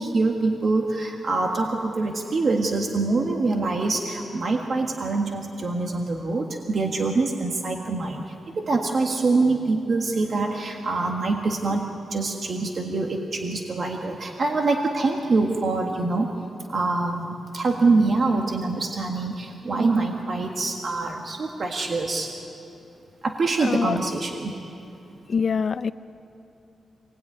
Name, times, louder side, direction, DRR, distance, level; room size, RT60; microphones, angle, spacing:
voice 1, 0.0-16.3 16.7-22.3 23.2-24.5, right 3 dB, 40° right, 1 dB, 1.7 m, -25 dB
voice 2, 23.6-24.0 25.3-25.9, left 5 dB, 40° left, 13 dB, 0.6 m, -24 dB
27.0 x 19.5 x 9.6 m, 2.8 s
wide cardioid pair, 180°, 0 cm